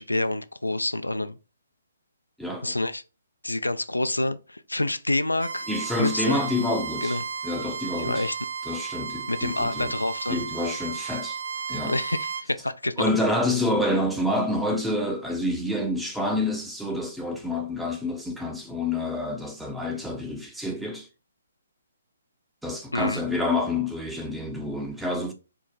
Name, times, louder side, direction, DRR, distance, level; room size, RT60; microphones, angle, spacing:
voice 1, 0.0-1.4 2.6-3.0 3.4-5.7 6.0-6.4 7.0-7.2 8.0-8.4 9.3-10.4 11.9-12.9 22.9-23.2, left 2 dB, 80° left, 0.3 m, -27 dB
voice 2, 2.4-2.8 5.7-7.2 7.4-8.3 8.6-9.9 10.3-11.4 11.7-12.0 13.0-21.1 22.6-25.3, left 2 dB, ahead, 0.6 m, -28 dB
Bowed string instrument, 5.4-12.4, right 6 dB, 55° right, 0.5 m, -34 dB
4.4 x 2.0 x 3.7 m
figure-of-eight pair, 130°, 0 cm